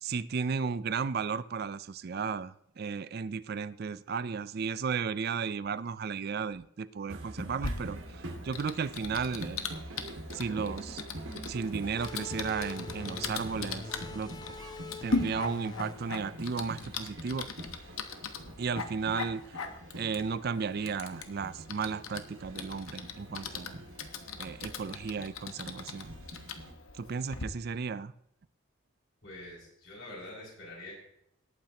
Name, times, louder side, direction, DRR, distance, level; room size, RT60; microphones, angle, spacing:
voice 1, 0.0-9.7 10.3-11.0 11.5-14.6 15.0-17.5 18.6-19.4 19.9-23.8 24.4-26.1 27.0-28.1, right 5 dB, 50° right, 0.4 m, -34 dB
sound 1, 7.1-26.7, right 1 dB, 75° right, 1.9 m, -45 dB
Typing, 7.6-27.4, left 4 dB, 85° left, 1.1 m, -40 dB
sound 2, 12.0-17.2, left 3 dB, 20° left, 0.3 m, -45 dB
voice 2, 29.2-30.9, left 1 dB, 60° left, 5.6 m, -45 dB
18.5 x 8.9 x 2.9 m
head